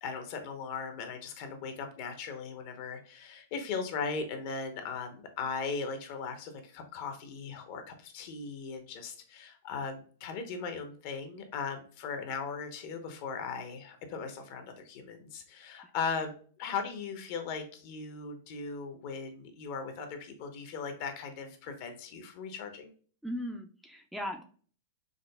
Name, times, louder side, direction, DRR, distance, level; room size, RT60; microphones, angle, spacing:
voice 1, 0.0-22.9, left 5 dB, 55° left, 6 dB, 0.8 m, -38 dB
voice 2, 23.2-24.4, equal, ahead, 4 dB, 0.4 m, -37 dB
5.0 x 2.1 x 2.2 m, 0.43 s
hypercardioid pair, 115°, 0 cm